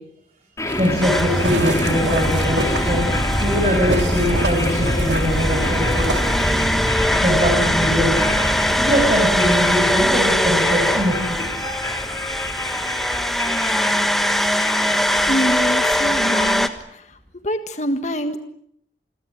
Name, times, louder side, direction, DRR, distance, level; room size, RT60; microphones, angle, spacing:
sound 1, 0.6-16.6, left 1 dB, 15° left, 3.9 m, -25 dB
sound 2, 0.7-6.6, right 2 dB, 80° right, 3.0 m, -28 dB
voice 1, 0.8-6.1 7.2-12.0 16.3-16.4, equal, 35° right, 0 dB, 6.8 m, -22 dB
sound 3, 1.0-16.7, equal, ahead, 1.4 m, -22 dB
voice 2, 15.3-17.0 17.4-18.4, equal, 40° left, 7 dB, 1.6 m, -25 dB
28.5 x 22.5 x 7.8 m, 0.69 s
head